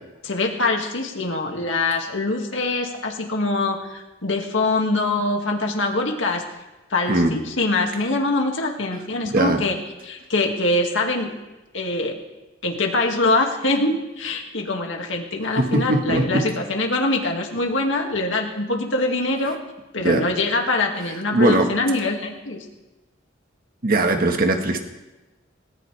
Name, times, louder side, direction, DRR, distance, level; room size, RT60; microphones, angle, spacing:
voice 1, 0.2-6.4 6.9-9.8 10.0-11.3 11.7-12.2 12.6-19.6 19.9-22.7, left 2 dB, 70° left, 2 dB, 2.2 m, -23 dB
voice 2, 7.1-7.4 9.2-9.6 15.6-16.4 20.0-20.2 21.3-21.7 23.8-24.8, right 2 dB, 50° right, 5 dB, 1.6 m, -20 dB
18.5 x 18.5 x 3.4 m, 1.1 s
head